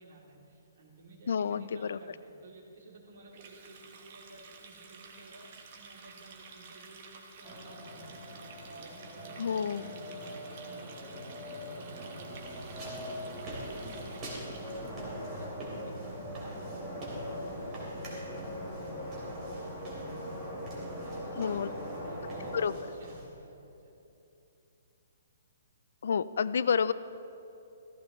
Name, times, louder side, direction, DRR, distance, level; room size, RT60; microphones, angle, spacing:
voice 1, 0.0-8.2 8.7-17.2 17.6-20.4 20.9-24.0, right 2 dB, 55° right, -3 dB, 3.0 m, -55 dB
voice 2, 1.3-2.0 9.4-9.9 21.4-21.7 22.5-22.7 26.0-26.9, left 6 dB, 65° left, 16 dB, 0.4 m, -29 dB
Water tap faucet, 3.3-14.9, right 5 dB, 40° right, 1.3 m, -51 dB
sound 1, 7.4-22.6, equal, 5° right, 2.6 m, -41 dB
sound 2, 12.3-23.3, right 1 dB, 20° right, 2.9 m, -47 dB
15.5 x 15.0 x 3.2 m, 2.8 s
hypercardioid pair, 170°, 0 cm